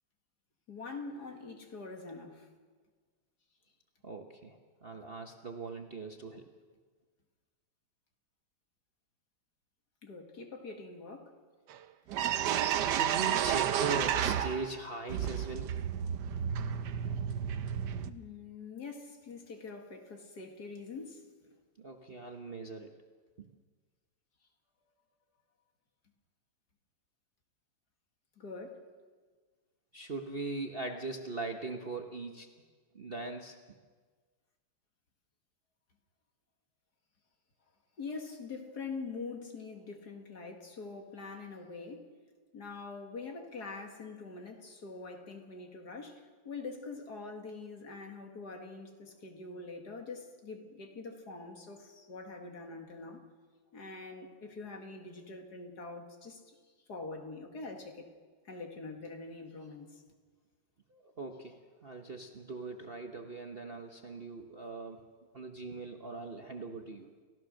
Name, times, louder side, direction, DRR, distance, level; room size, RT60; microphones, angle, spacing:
voice 1, 0.7-2.5 10.0-11.4 18.1-21.3 28.4-28.9 38.0-42.1 42.5-53.2 53.7-56.6 56.9-58.1 58.4-60.0, left 4 dB, 50° left, 2.5 m, -44 dB
voice 2, 4.0-6.5 12.8-15.8 21.8-22.9 23.4-23.5 29.9-32.5 32.9-33.8 60.9-65.0 65.3-67.1, right 3 dB, 35° right, 1.1 m, -40 dB
sound 1, 11.7-11.8 12.1-14.8 15.1-18.1, right 9 dB, 65° right, 1.3 m, -31 dB
30.0 x 14.5 x 6.5 m
omnidirectional pair, 2.2 m